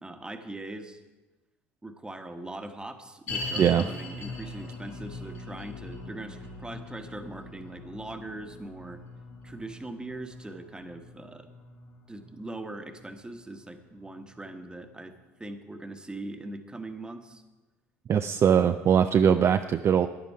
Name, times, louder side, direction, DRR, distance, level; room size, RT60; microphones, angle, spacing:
voice 1, 0.0-1.0 1.8-9.0 9.4-11.5 12.1-17.4, right 2 dB, 10° right, 7 dB, 1.3 m, -41 dB
sound 1, 3.3-14.6 14.8-14.9 15.6-15.7, left 2 dB, 70° left, 3.7 m, -41 dB
voice 2, 3.6-3.9 18.1-20.1, right 8 dB, 40° right, 7 dB, 0.5 m, -21 dB
13.5 x 10.5 x 4.7 m, 1.1 s
hypercardioid pair, 65°, 7 cm